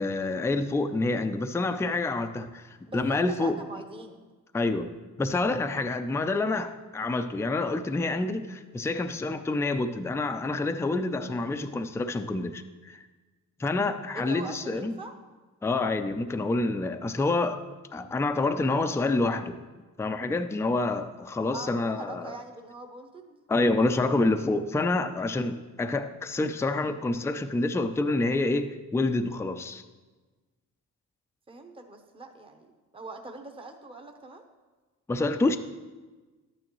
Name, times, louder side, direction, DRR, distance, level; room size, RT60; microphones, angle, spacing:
voice 1, 0.0-3.6 4.5-4.9 5.2-13.0 13.6-14.9 15.6-17.6 17.9-19.6 20.0-22.3 23.5-29.8 35.1-35.6, left 2 dB, 10° left, 8 dB, 0.4 m, -27 dB
voice 2, 2.9-4.2 14.1-15.1 21.5-23.4 31.5-32.7 32.9-34.5, right 2 dB, 15° right, 3 dB, 0.8 m, -42 dB
11.5 x 9.0 x 3.1 m, 1.3 s
cardioid pair, 105°, 34 cm